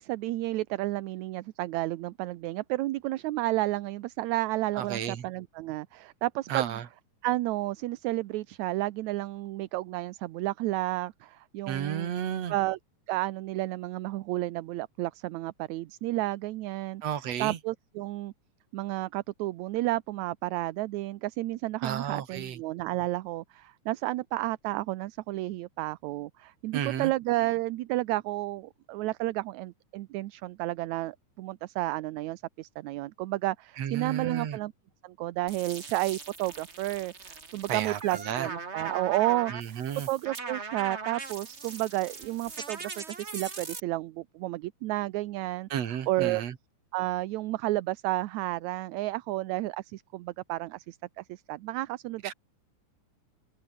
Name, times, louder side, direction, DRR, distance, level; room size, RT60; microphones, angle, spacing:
voice 1, 0.0-6.8 7.2-12.1 12.5-12.8 13.1-17.0 17.4-18.3 18.7-34.7 35.0-39.8 40.1-45.7 46.1-46.4 46.9-52.3, right 18 dB, 75° right, 1.9 m, -31 dB
voice 2, 4.8-5.2 6.5-6.8 11.7-12.5 17.0-17.6 21.8-22.6 26.7-27.1 33.8-34.6 37.7-38.5 39.5-40.1 45.7-46.5 52.2-52.3, right 9 dB, 55° right, 2.8 m, -32 dB
sound 1, 35.5-43.8, right 4 dB, 25° right, 1.7 m, -40 dB
omnidirectional pair, 3.6 m